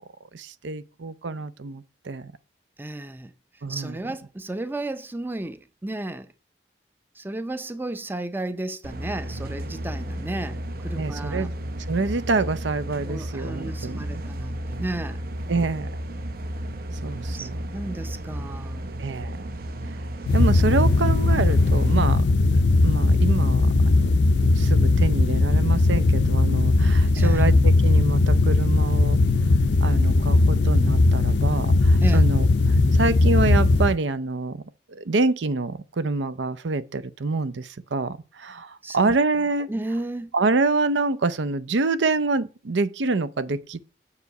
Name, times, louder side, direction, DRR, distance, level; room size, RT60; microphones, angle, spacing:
voice 1, 0.3-2.3 3.6-4.0 11.0-11.6 11.9-14.2 15.5-15.9 17.0-17.6 19.0-19.5 19.8-20.0 20.3-24.2 24.5-29.2 29.8-34.6 34.9-39.7 40.3-43.8, right 3 dB, 90° right, 0.6 m, -26 dB
voice 2, 2.8-3.3 3.7-6.3 7.2-11.5 13.0-15.2 17.0-18.9 27.2-27.5 32.0-32.3 38.8-39.1 39.7-40.3, right 2 dB, 10° right, 0.5 m, -33 dB
sound 1, 8.8-22.1, right 1 dB, 55° right, 0.7 m, -33 dB
sound 2, 20.3-34.0, left 2 dB, 75° left, 0.5 m, -19 dB
6.9 x 4.9 x 6.5 m
head